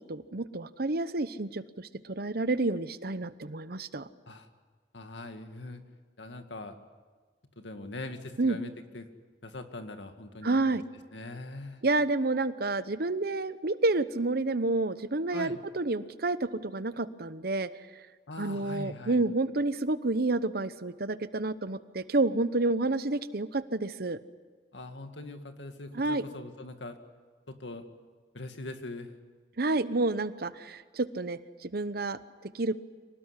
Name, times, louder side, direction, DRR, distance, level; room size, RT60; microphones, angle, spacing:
voice 1, 0.1-4.1 8.4-8.6 10.4-10.8 11.8-17.7 18.4-24.2 25.9-26.2 29.6-32.7, right 2 dB, 60° right, 14 dB, 0.9 m, -29 dB
voice 2, 4.9-5.8 6.2-6.8 7.6-9.1 9.4-10.8 11.1-11.8 15.3-15.6 18.3-19.2 24.7-27.0 27.5-27.8 28.3-29.1, left 2 dB, 90° left, 7 dB, 2.1 m, -42 dB
25.0 x 18.5 x 9.8 m, 1.4 s
head